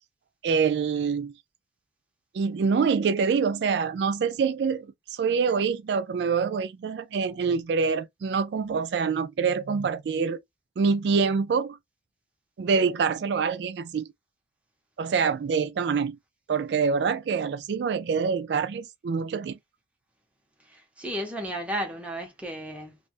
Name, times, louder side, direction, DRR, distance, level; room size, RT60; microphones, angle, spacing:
voice 1, 0.4-1.3 2.3-10.4 10.8-11.8 12.6-14.1 15.0-16.2 16.5-19.6, right 5 dB, 70° right, 0.3 m, -25 dB
voice 2, 20.6-23.0, equal, 10° right, 0.8 m, -34 dB
3.2 x 2.3 x 2.5 m
head